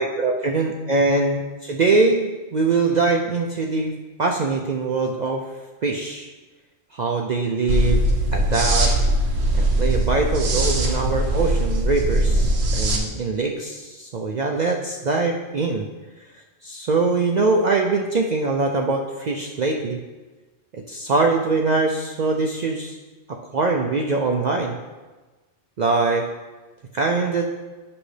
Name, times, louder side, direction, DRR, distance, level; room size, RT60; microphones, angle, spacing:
voice 1, 0.0-3.9 4.2-5.4 5.8-6.3 6.9-8.9 9.5-15.9 16.3-20.0 20.7-23.0 23.3-24.8 25.8-26.3 26.9-27.5, right 3 dB, 60° right, 1 dB, 0.4 m, -23 dB
sound 1, 7.7-13.0, right 1 dB, 90° right, 1.3 m, -20 dB
8.5 x 6.3 x 3.3 m, 1.3 s
omnidirectional pair, 1.3 m